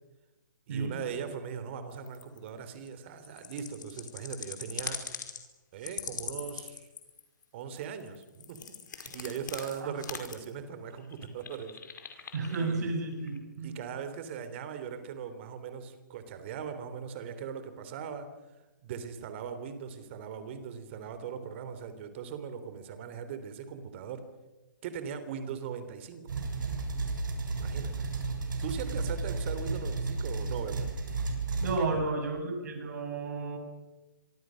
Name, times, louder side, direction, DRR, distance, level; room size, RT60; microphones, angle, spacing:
voice 1, 0.7-5.0 5.7-6.9 7.5-8.6 8.9-11.7 12.2-13.0 13.6-18.3 18.8-24.2 24.8-26.2 27.6-27.9 28.6-30.9 31.6-32.1, right 7 dB, 35° right, 10 dB, 3.4 m, -39 dB
sound 1, 1.9-2.5 2.9-3.0 3.2-5.4 5.8-7.4 7.8-10.5 11.0-12.8 13.1-13.4, left 6 dB, 70° left, 5.2 m, -41 dB
voice 2, 12.3-13.8 31.6-33.6, right 3 dB, 55° right, 5 dB, 7.7 m, -32 dB
sound 2, 26.3-31.8, right 3 dB, 75° right, 7.1 m, -33 dB
26.5 x 24.0 x 6.5 m, 1.1 s
hypercardioid pair, 160°, 11 cm